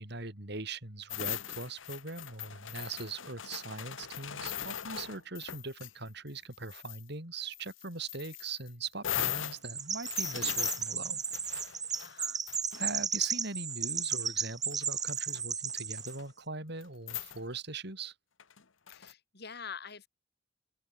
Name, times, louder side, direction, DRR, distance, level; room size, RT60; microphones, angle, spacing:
voice 1, 0.0-11.2 12.8-18.1, right 3 dB, 60° right, 5.3 m, -41 dB
Dragging a chain out of a sink, 1.1-5.9 6.3-7.0 7.5-13.3 14.2-14.3 14.7-15.4 15.7-16.2 16.8-16.9 17.1-17.4 18.4-19.1, left 11 dB, 90° left, 1.3 m, -39 dB
Chirp tweet, 9.6-16.2, right 6 dB, 20° right, 1.1 m, -34 dB
voice 2, 12.0-12.4 18.9-20.1, left 6 dB, 55° left, 4.9 m, -45 dB
open air
head